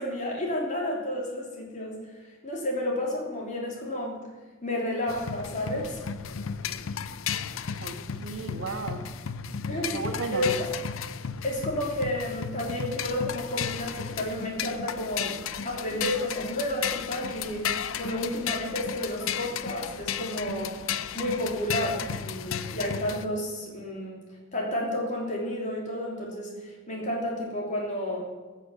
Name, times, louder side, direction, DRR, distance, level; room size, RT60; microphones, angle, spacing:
voice 1, 0.0-4.2 4.6-6.0 9.7-10.0 10.3-10.7 11.4-15.4 15.6-17.7 18.0-20.8 21.1-24.2 24.5-28.2, left 1 dB, 40° left, -2 dB, 3.2 m, -31 dB
sound 1, 5.1-23.2, left 7 dB, 80° left, 0.5 m, -34 dB
voice 2, 7.8-9.1 9.7-10.5, right 3 dB, 80° right, 4 dB, 1.4 m, -35 dB
14.0 x 6.6 x 7.5 m, 1.3 s
head